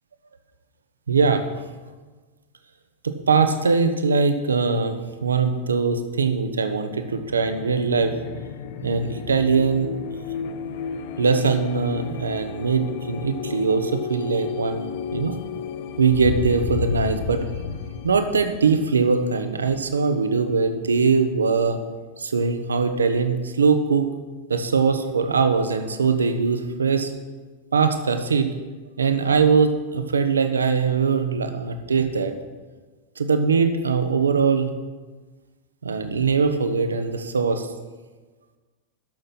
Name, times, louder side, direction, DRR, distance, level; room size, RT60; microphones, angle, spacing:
voice 1, 1.1-1.4 3.0-5.0 5.2-8.1 8.8-9.9 11.2-15.4 16.0-17.5 18.0-21.8 22.2-24.1 24.5-27.1 27.7-28.5 29.0-32.3 33.2-34.7 35.8-37.7, right 5 dB, 70° right, 9 dB, 0.9 m, -21 dB
sound 1, 6.9-20.4, left 7 dB, 50° left, 0.7 m, -33 dB
12.0 x 6.7 x 5.8 m, 1.3 s
figure-of-eight pair, 90°, 0 cm